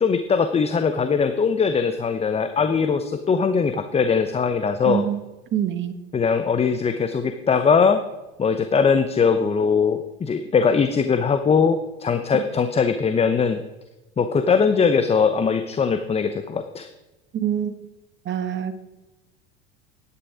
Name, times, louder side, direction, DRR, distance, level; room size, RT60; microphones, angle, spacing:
voice 1, 0.0-5.0 6.1-8.0 8.4-13.6 14.2-16.9, left 5 dB, 20° left, 9 dB, 0.8 m, -21 dB
voice 2, 4.8-5.2 5.5-5.9 12.3-12.4 17.3-17.7 18.2-18.7, right 10 dB, 35° right, 10 dB, 1.3 m, -25 dB
11.0 x 9.8 x 5.0 m, 1.0 s
hypercardioid pair, 90°, 32 cm